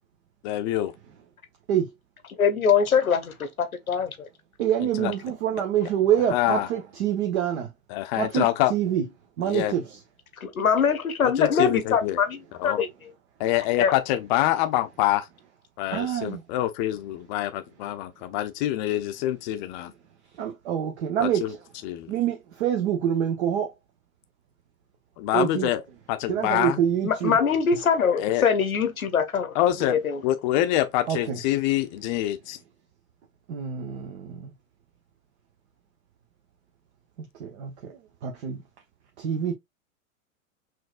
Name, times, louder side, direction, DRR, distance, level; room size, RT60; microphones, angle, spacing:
voice 1, 0.4-0.9 5.0-5.1 6.3-6.7 7.9-8.7 9.4-9.7 11.2-12.2 12.6-12.8 13.4-15.3 15.8-19.9 21.2-21.5 21.8-22.1 25.2-25.8 26.1-26.8 28.2-28.5 29.5-30.0 30.2-32.6, left 14 dB, 35° left, 0.7 m, -25 dB
voice 2, 2.4-4.3 10.4-12.9 13.8-13.9 15.9-16.0 27.0-29.5 29.9-30.2, left 6 dB, 80° left, 0.9 m, -23 dB
voice 3, 4.6-7.7 8.2-9.0 9.4-10.0 15.9-16.4 20.4-21.6 22.1-23.7 25.3-25.7 26.3-27.4 31.1-31.4 33.5-34.5 37.4-38.6 39.2-39.5, right 9 dB, 50° right, 0.9 m, -26 dB
6.0 x 2.6 x 2.4 m
figure-of-eight pair, 100°, 41 cm